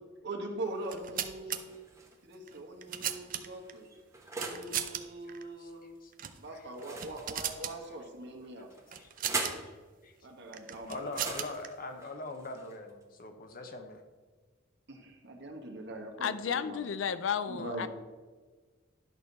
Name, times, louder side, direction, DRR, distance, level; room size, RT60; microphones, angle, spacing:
voice 1, 0.2-1.8 2.2-3.9 4.4-5.9 6.4-8.7 10.2-11.0 14.9-16.8 17.5-17.9, right 2 dB, 60° right, 2 dB, 1.5 m, -42 dB
sound 1, 0.8-1.6 2.5-3.7 4.3-5.0 5.3-5.4 6.1-6.4 6.8-7.8 8.9-9.5 10.5-11.7, right 10 dB, 45° right, 0.5 m, -37 dB
sound 2, 1.6-2.4 3.1-4.7 6.7-7.9 8.7-9.7 11.1-13.0, right 3 dB, 15° right, 1.1 m, -41 dB
voice 2, 10.9-14.0 17.5-17.9, left 2 dB, 45° left, 6 dB, 0.9 m, -42 dB
voice 3, 16.2-17.9, left 7 dB, 70° left, 13 dB, 0.4 m, -32 dB
11.0 x 6.5 x 4.1 m, 1.4 s
head